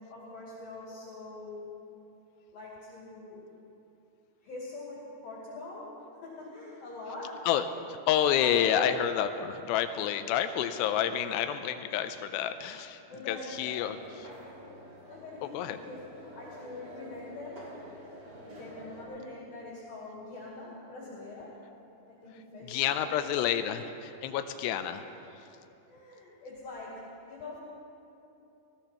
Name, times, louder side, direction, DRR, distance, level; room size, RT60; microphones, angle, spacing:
voice 1, 0.0-1.8 2.5-3.4 4.4-5.9 6.2-7.5 8.4-8.9 13.1-13.9 15.1-17.7 18.4-21.6 22.1-23.1 25.9-27.6, left 2 dB, 60° left, -7 dB, 3.8 m, -43 dB
voice 2, 7.5-13.0 13.3-14.0 15.5-15.8 22.7-25.0, left 9 dB, 85° left, 9 dB, 2.7 m, -29 dB
sound 1, 13.5-19.1, equal, 25° right, 2.8 m, -48 dB
19.5 x 17.5 x 3.0 m, 2.8 s
omnidirectional pair, 5.0 m